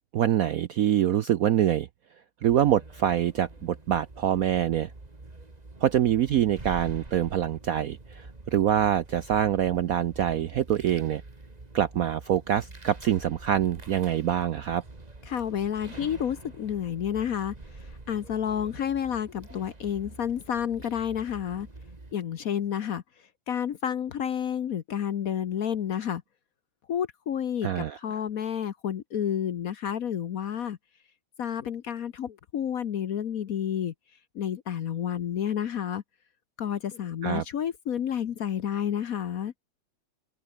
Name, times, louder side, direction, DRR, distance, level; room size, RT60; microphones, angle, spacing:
voice 1, 0.1-1.9 2.4-4.9 5.8-11.2 11.7-14.8 27.6-28.0 37.2-37.4, right 10 dB, 70° right, 0.8 m, -25 dB
sound 1, 2.4-22.1, right 2 dB, 20° right, 2.3 m, -46 dB
voice 2, 15.3-21.7 22.1-23.0 23.5-26.2 26.9-30.8 31.4-33.9 34.3-36.0 36.6-39.5, left 9 dB, 55° left, 1.1 m, -30 dB
omnidirectional pair, 2.1 m